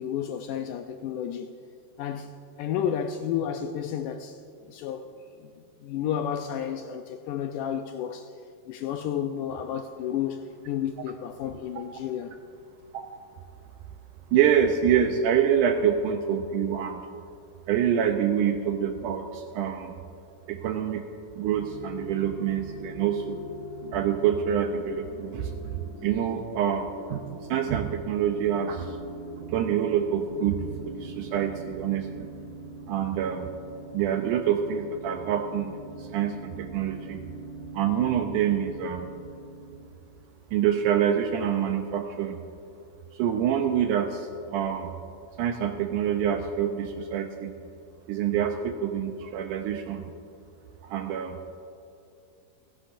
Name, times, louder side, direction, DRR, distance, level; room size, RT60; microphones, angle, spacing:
voice 1, 0.0-1.5 2.0-4.4 4.7-5.5 5.8-8.3 8.7-12.3, left 9 dB, 85° left, 6 dB, 1.9 m, -32 dB
voice 2, 14.3-17.1 17.7-20.0 20.5-21.0 21.4-23.4 23.9-29.0 29.5-32.3 32.9-33.5 33.9-35.7 36.0-37.2 37.7-39.1 40.5-42.4 43.1-44.9 45.4-47.5 48.1-50.0 50.8-51.4, right 8 dB, 80° right, 5 dB, 1.9 m, -26 dB
sound 1, 21.4-39.9, right 1 dB, 20° left, 1.4 m, -42 dB
28.5 x 10.0 x 2.5 m, 2.6 s
omnidirectional pair, 4.1 m